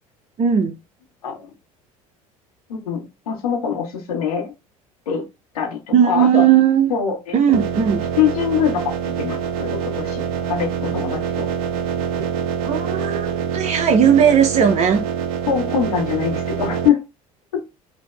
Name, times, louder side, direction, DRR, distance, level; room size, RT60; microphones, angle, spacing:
voice 1, 0.4-0.8 5.9-6.9 7.3-8.0 12.6-15.0, right 8 dB, 40° right, 0.7 m, -17 dB
voice 2, 2.7-4.5 5.1-5.2 5.5-6.4 6.9-7.3 8.2-11.5 15.5-17.0 17.5-17.6, left 8 dB, 85° left, 1.4 m, -23 dB
Original tron bike engine, 7.5-16.9, right 7 dB, 75° right, 0.6 m, -25 dB
5.9 x 2.7 x 2.3 m
hypercardioid pair, 70°, 19 cm